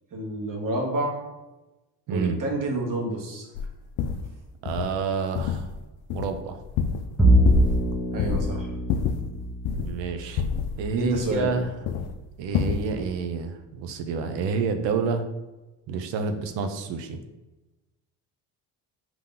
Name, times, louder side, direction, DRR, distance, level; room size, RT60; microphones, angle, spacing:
voice 1, 0.1-1.2 2.1-3.5 8.1-8.7 10.9-11.6, right 2 dB, 45° right, -1 dB, 1.3 m, -28 dB
voice 2, 2.1-2.4 4.6-5.7 6.1-6.6 9.7-10.5 10.8-11.7 12.4-15.2 15.9-17.2, right 5 dB, 75° right, 7 dB, 0.7 m, -29 dB
sound 1, 3.5-3.7 4.0-4.3 4.7-4.9 5.3-5.8 6.1-7.2 7.4-7.9 8.2-8.5 8.9-10.0 10.4-11.6 11.9-12.1 12.5-12.9, left 6 dB, 60° left, 0.5 m, -27 dB
Bowed string instrument, 7.2-13.6, right 1 dB, ahead, 0.7 m, -26 dB
3.7 x 3.0 x 3.8 m, 1.1 s
supercardioid pair, 80°, 44 cm